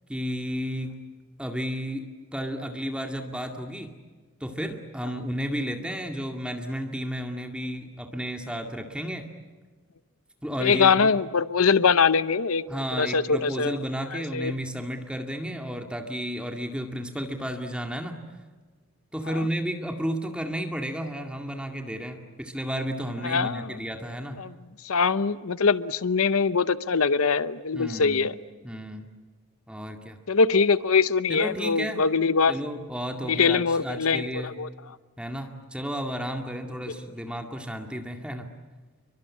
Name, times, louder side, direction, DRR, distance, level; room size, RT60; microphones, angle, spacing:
voice 1, 0.1-1.0 1.4-2.0 2.3-3.9 4.4-9.2 10.4-11.2 12.7-18.2 19.1-24.4 27.7-28.3 28.6-29.1 29.7-30.2 31.3-32.0 32.5-34.6 35.2-38.5, equal, 5° right, 4 dB, 2.1 m, -32 dB
voice 2, 10.6-12.6 13.0-13.8 14.1-14.5 23.2-23.7 24.4-24.5 24.8-28.3 30.3-32.5 33.3-34.7, left 5 dB, 80° left, 15 dB, 0.8 m, -22 dB
29.0 x 23.5 x 8.5 m, 1.4 s
head